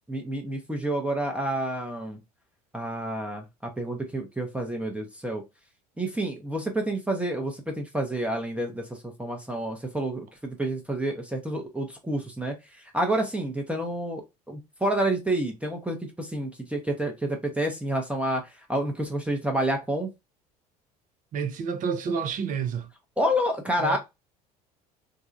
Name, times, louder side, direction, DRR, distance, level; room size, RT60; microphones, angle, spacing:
voice 1, 0.1-2.2 2.7-5.4 6.0-20.1 23.2-24.0, right 1 dB, 5° right, 0.8 m, -29 dB
voice 2, 21.3-22.9 23.8-24.0, right 6 dB, 40° right, 0.7 m, -29 dB
3.6 x 2.2 x 2.4 m
figure-of-eight pair, 65°, 20 cm